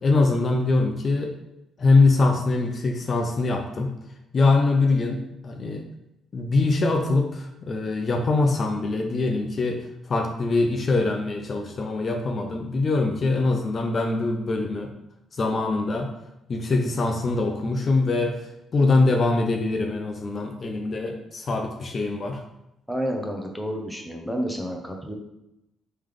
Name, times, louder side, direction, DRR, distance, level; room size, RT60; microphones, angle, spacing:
voice 1, 0.0-1.3 1.8-3.9 4.3-5.8 6.3-9.8 10.1-14.9 15.3-16.1 16.5-18.4 18.7-22.4, left 3 dB, 45° left, 3 dB, 0.5 m, -23 dB
voice 2, 22.9-25.1, equal, ahead, 1 dB, 0.7 m, -30 dB
3.3 x 3.2 x 3.6 m, 0.86 s
cardioid pair, 90°, 0 cm